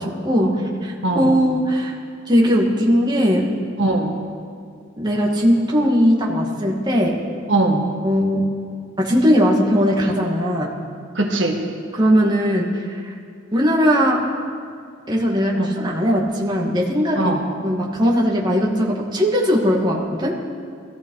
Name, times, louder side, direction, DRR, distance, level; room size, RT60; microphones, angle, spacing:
voice 1, 0.0-1.9 2.3-3.5 5.0-7.2 8.0-8.4 9.0-10.7 11.9-13.1 13.5-14.2 15.1-17.4 17.6-20.4, equal, 20° right, -3 dB, 1.9 m, -19 dB
voice 2, 3.8-4.2 7.5-7.9 11.1-11.6 15.5-15.7 17.1-17.4, right 2 dB, 70° right, 2 dB, 1.5 m, -21 dB
20.0 x 15.0 x 4.7 m, 2.3 s
head